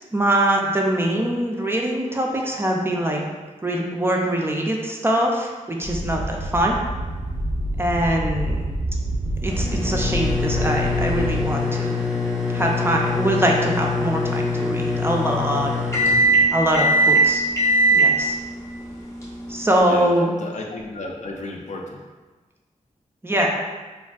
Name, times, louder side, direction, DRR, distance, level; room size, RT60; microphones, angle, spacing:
voice 1, 0.1-3.3 3.6-6.8 7.8-8.7 9.4-12.0 12.5-15.7 16.5-17.4 17.9-18.3 19.5-20.3 23.2-23.5, right 1 dB, 20° right, -1 dB, 0.3 m, -23 dB
sound 1, 5.8-11.5, right 1 dB, 80° right, 0.5 m, -27 dB
sound 2, 9.5-19.8, equal, 20° left, 0.6 m, -22 dB
voice 2, 19.9-22.0, left 2 dB, 65° left, 0 dB, 0.4 m, -33 dB
3.3 x 2.5 x 2.3 m, 1.3 s
wide cardioid pair, 125°, 13 cm